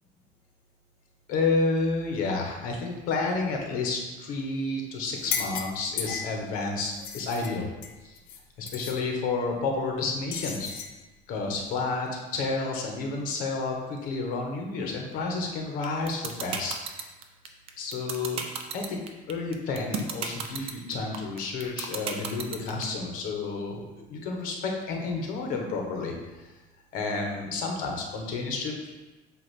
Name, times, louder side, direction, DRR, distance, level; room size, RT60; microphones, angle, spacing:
voice 1, 1.3-7.7 8.0-8.2 8.6-10.7 11.3-17.0 17.8-18.5 18.7-19.0 19.3-26.5 26.9-28.9, left 3 dB, 65° left, 1 dB, 1.3 m, -30 dB
sound 1, 5.1-6.4 6.8-8.4 8.7-9.0 10.3-10.9, left 7 dB, 90° left, 0.8 m, -35 dB
sound 2, 15.8-22.8, right 7 dB, 40° right, 0.6 m, -32 dB
8.2 x 2.9 x 5.8 m, 1.2 s
cardioid pair, 170°, 15 cm